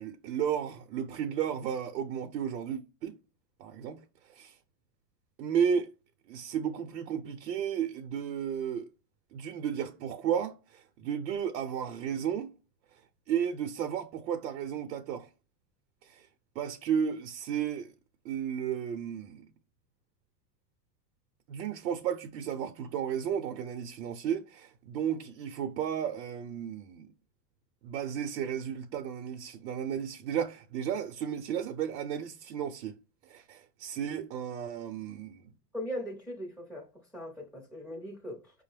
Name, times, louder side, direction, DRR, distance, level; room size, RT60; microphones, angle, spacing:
voice 1, 0.0-3.2 3.6-4.6 5.4-5.9 6.3-8.9 9.3-12.5 13.3-15.3 16.0-16.3 16.6-17.9 18.2-19.5 21.5-27.1 27.8-32.9 33.2-35.5, right 8 dB, 80° right, 0.7 m, -33 dB
voice 2, 35.7-36.9 37.1-38.6, equal, ahead, 0.5 m, -39 dB
5.1 x 2.1 x 3.3 m
supercardioid pair, 130°, 49 cm